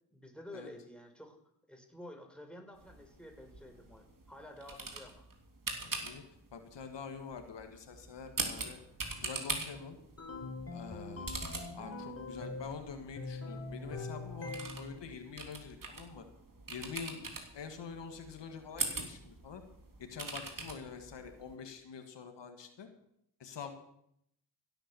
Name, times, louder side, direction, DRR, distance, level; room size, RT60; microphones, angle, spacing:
voice 1, 0.1-1.4 1.7-5.2 11.1-11.5, left 1 dB, ahead, 3 dB, 4.3 m, -51 dB
sound 1, 2.8-21.6, right 3 dB, 50° right, 3.3 m, -43 dB
voice 2, 5.8-6.2 6.5-8.8 9.2-10.0 10.7-11.3 11.7-16.2 16.7-19.6 20.0-22.9 23.4-23.7, left 6 dB, 80° left, 6 dB, 1.8 m, -46 dB
sound 2, 10.2-12.8 13.2-15.0, left 3 dB, 35° left, 3.3 m, -42 dB
16.0 x 9.1 x 6.9 m, 0.75 s
cardioid pair, 45°, 42 cm